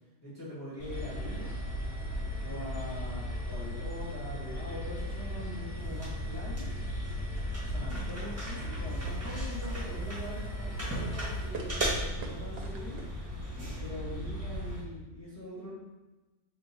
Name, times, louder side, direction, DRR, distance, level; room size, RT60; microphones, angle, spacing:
voice 1, 0.2-1.5 2.4-6.7 7.6-13.4 13.8-15.7, left 1 dB, 15° left, -8 dB, 1.0 m, -43 dB
sound 1, 0.8-14.8, equal, 15° right, 1.0 m, -38 dB
sound 2, 0.9-11.5, equal, 65° left, 1.0 m, -39 dB
sound 3, 8.1-13.7, right 3 dB, 65° right, 0.8 m, -42 dB
3.6 x 2.6 x 4.0 m, 1.1 s
omnidirectional pair, 1.2 m